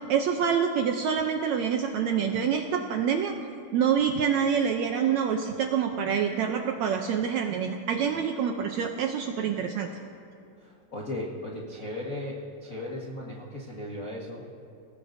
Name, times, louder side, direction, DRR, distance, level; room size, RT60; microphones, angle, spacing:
voice 1, 0.1-3.3 3.7-9.9, right 7 dB, 75° right, 4 dB, 1.7 m, -26 dB
voice 2, 10.6-14.4, left 1 dB, 60° left, -3 dB, 0.8 m, -36 dB
29.0 x 18.0 x 2.7 m, 2.5 s
omnidirectional pair, 3.9 m